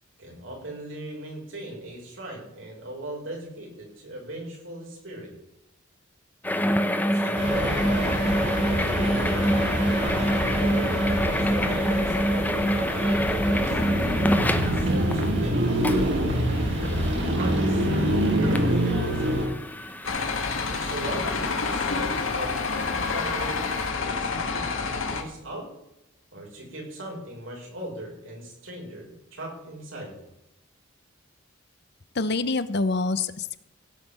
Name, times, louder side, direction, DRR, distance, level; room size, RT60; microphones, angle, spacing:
voice 1, 0.2-5.3 7.1-8.5 10.2-13.8 14.5-16.5 17.1-19.4 20.3-23.6 24.0-25.7 26.3-30.1, right 1 dB, 75° right, -1 dB, 6.0 m, -39 dB
sound 1, 6.4-23.9, equal, 10° left, 0.9 m, -28 dB
sound 2, 7.4-19.5, right 1 dB, 60° right, 3.4 m, -26 dB
sound 3, 20.0-25.2, left 4 dB, 75° left, 2.1 m, -28 dB
voice 2, 32.1-33.6, left 3 dB, 55° left, 14 dB, 0.8 m, -26 dB
17.0 x 5.9 x 8.5 m, 0.87 s
head